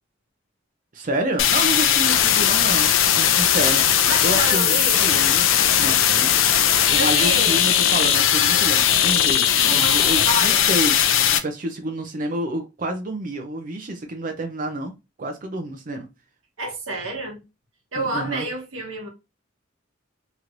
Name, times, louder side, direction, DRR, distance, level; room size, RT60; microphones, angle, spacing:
voice 1, 0.9-6.4 6.9-11.0 11.3-14.9 15.2-16.1 18.0-18.5, right 1 dB, 45° right, 0.5 m, -29 dB
sound 1, 1.4-11.4, left 9 dB, 75° left, 0.4 m, -18 dB
voice 2, 4.1-5.2 6.9-7.6 9.7-10.6 16.6-17.4 17.9-19.1, right 1 dB, 90° right, 1.1 m, -29 dB
3.1 x 3.0 x 2.5 m
head